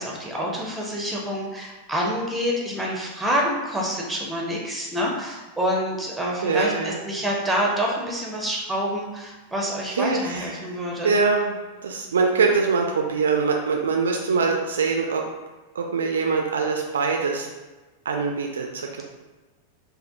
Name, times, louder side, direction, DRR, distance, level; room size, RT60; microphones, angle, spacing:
voice 1, 0.0-11.2, equal, 5° right, -2 dB, 0.7 m, -27 dB
voice 2, 6.4-7.0 9.9-10.7 11.0-15.2 15.7-17.5 18.1-19.0, right 4 dB, 65° right, 2 dB, 0.3 m, -23 dB
3.4 x 2.2 x 2.5 m, 1.2 s
figure-of-eight pair, 90°, 0 cm